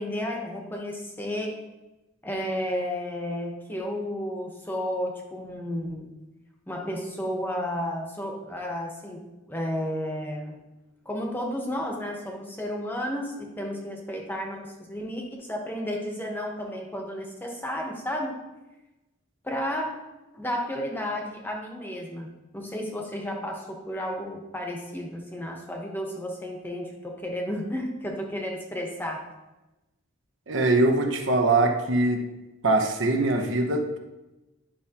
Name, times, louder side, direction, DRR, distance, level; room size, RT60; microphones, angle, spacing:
voice 1, 0.0-1.6 2.2-6.1 6.7-10.6 11.0-18.4 19.4-20.0 20.3-29.3, equal, 10° left, 0 dB, 0.9 m, -32 dB
voice 2, 30.5-32.3 32.6-34.0, right 2 dB, 65° right, 4 dB, 0.9 m, -22 dB
10.0 x 5.7 x 2.9 m, 1.0 s
head